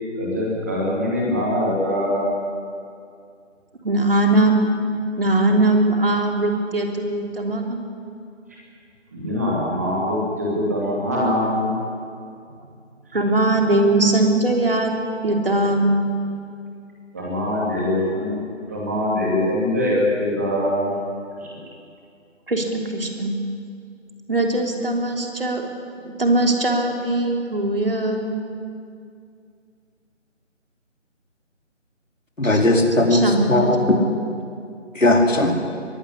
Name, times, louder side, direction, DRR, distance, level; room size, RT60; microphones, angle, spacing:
voice 1, 0.2-2.3 9.1-11.7 17.1-18.4 18.7-20.9, left 1 dB, 10° right, -5 dB, 2.7 m, -23 dB
voice 2, 3.8-4.7 5.2-7.8 13.1-14.9 15.2-15.9 22.5-23.3 24.3-25.6 26.0-28.3 32.4-32.6 33.1-33.8, right 2 dB, 50° right, 2 dB, 3.3 m, -20 dB
voice 3, 32.4-33.2 33.5-34.0 35.0-35.5, left 2 dB, 90° left, 1 dB, 4.5 m, -17 dB
22.0 x 16.0 x 10.0 m, 2.4 s
figure-of-eight pair, 175°, 38 cm